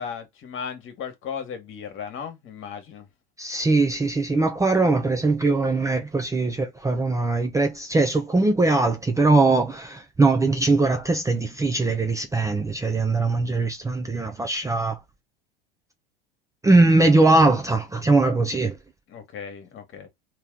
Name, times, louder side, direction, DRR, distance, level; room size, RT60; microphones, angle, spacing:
voice 1, 0.0-3.1 19.1-20.1, left 7 dB, 45° left, 1.4 m, -36 dB
voice 2, 3.4-15.0 16.6-18.8, right 3 dB, 10° right, 0.6 m, -21 dB
3.4 x 3.0 x 3.6 m
hypercardioid pair, 80°, 29 cm